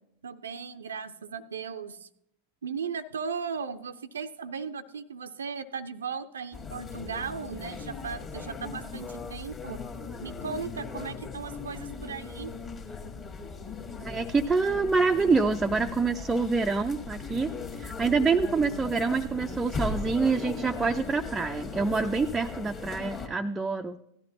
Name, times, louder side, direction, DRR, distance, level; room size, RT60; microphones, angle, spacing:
voice 1, 0.2-2.1 2.6-9.8 10.2-12.5, right 6 dB, 70° right, 10 dB, 0.4 m, -37 dB
sound 1, 6.5-23.3, left 4 dB, 25° left, 1.5 m, -38 dB
voice 2, 14.0-24.0, right 4 dB, 10° right, 5 dB, 0.4 m, -26 dB
17.0 x 12.0 x 2.7 m, 0.78 s
figure-of-eight pair, 90°, 0 cm